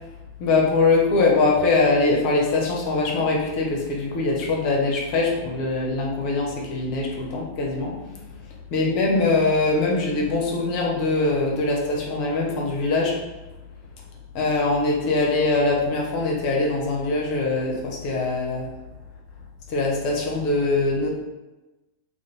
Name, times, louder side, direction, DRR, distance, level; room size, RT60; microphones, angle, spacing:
voice 1, 0.4-8.1 8.7-13.1 14.3-18.7 19.7-21.1, left 3 dB, 45° left, -2 dB, 0.6 m, -22 dB
2.5 x 2.0 x 3.0 m, 1.1 s
figure-of-eight pair, 90°, 0 cm